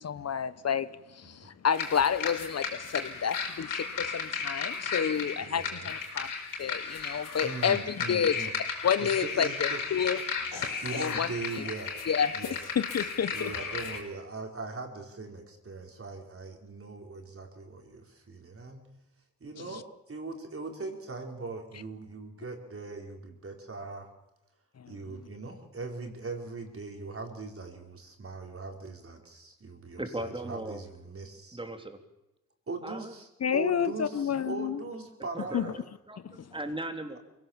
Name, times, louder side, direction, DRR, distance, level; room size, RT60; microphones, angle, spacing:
voice 1, 0.0-6.3 6.6-8.4 8.8-10.2 10.6-10.7 11.0-11.3 11.6-11.7 12.1-12.4 12.8-13.5 33.4-34.8 35.5-35.7, left 7 dB, 50° left, 0.9 m, -29 dB
sound 1, 1.7-14.0, left 5 dB, 80° left, 5.2 m, -35 dB
voice 2, 5.4-5.9 7.4-8.5 9.0-9.8 10.8-11.9 12.3-12.6 13.3-18.8 19.4-24.1 24.9-31.6 32.7-35.8, right 3 dB, 45° right, 4.7 m, -40 dB
voice 3, 30.0-30.8 31.5-32.0 32.8-33.1 35.3-37.2, right 1 dB, 15° right, 3.4 m, -38 dB
23.5 x 17.0 x 7.4 m
cardioid pair, 60°, 32 cm